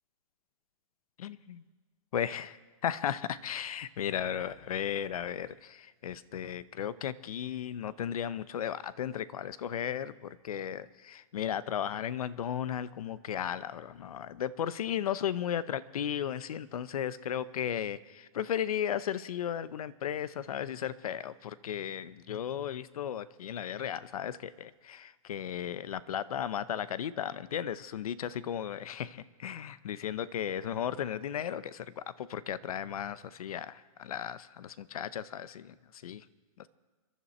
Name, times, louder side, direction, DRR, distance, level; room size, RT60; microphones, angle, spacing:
voice 1, 1.2-1.6 2.1-36.2, left 9 dB, 85° left, 16 dB, 0.8 m, -35 dB
29.0 x 11.5 x 4.4 m, 1.4 s
hypercardioid pair, 150°, 18 cm